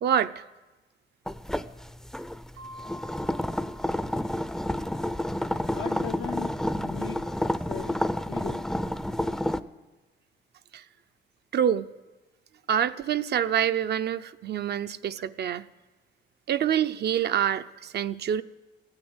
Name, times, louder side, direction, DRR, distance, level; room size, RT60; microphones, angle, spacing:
voice 1, 0.0-0.4 10.7-10.8 11.5-11.9 12.7-15.6 16.5-18.4, right 9 dB, 55° right, 11 dB, 0.6 m, -26 dB
sound 1, 1.3-9.6, left 1 dB, 5° left, 0.5 m, -30 dB
Mallet percussion, 2.6-5.2, equal, 90° right, 4.1 m, -47 dB
voice 2, 5.7-7.2 7.7-8.6, left 9 dB, 80° left, 7 dB, 0.7 m, -38 dB
16.0 x 9.7 x 8.0 m, 1.2 s
cardioid pair, 90°, 20 cm